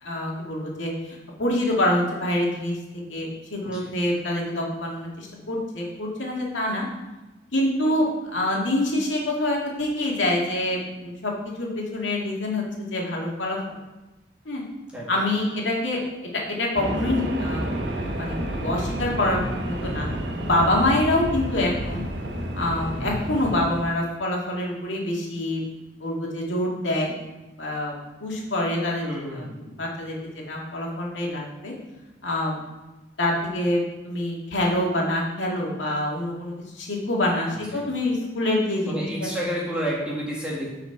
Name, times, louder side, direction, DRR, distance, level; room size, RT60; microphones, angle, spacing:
voice 1, 0.0-2.8 3.1-6.9 7.5-11.3 11.6-12.6 12.9-13.6 14.5-14.6 15.1-17.7 18.2-20.1 20.4-22.0 22.5-25.6 26.0-27.1 27.6-27.9 28.2-29.0 29.3-31.7 32.2-32.6 33.2-39.3, left 1 dB, 90° left, -2 dB, 2.2 m, -26 dB
sound 1, 16.7-23.8, right 1 dB, 70° right, 1.3 m, -31 dB
sound 2, 17.4-23.6, equal, 45° left, 2.3 m, -34 dB
voice 2, 29.0-29.6 37.7-37.8 38.9-40.7, equal, 5° right, -6 dB, 1.9 m, -30 dB
9.6 x 4.9 x 4.6 m, 1.1 s
head